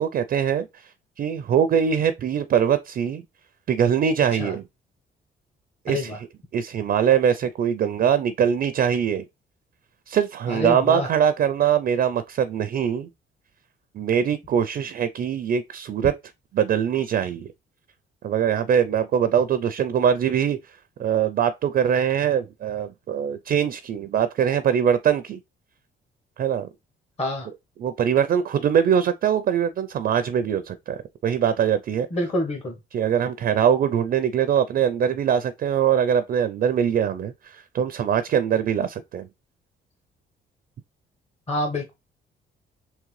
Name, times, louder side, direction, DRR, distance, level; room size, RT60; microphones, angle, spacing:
voice 1, 0.0-3.2 3.7-4.7 5.9-6.3 6.5-9.2 10.1-13.1 13.9-16.1 16.5-17.5 18.2-25.4 26.4-26.7 27.8-32.1 32.9-39.3, right 8 dB, 50° right, 0.4 m, -22 dB
voice 2, 5.9-6.2 10.5-11.1 27.2-27.5 32.1-32.8 41.5-41.9, left 1 dB, 30° left, 1.0 m, -27 dB
3.7 x 3.1 x 3.1 m
cardioid pair, 90°, 20 cm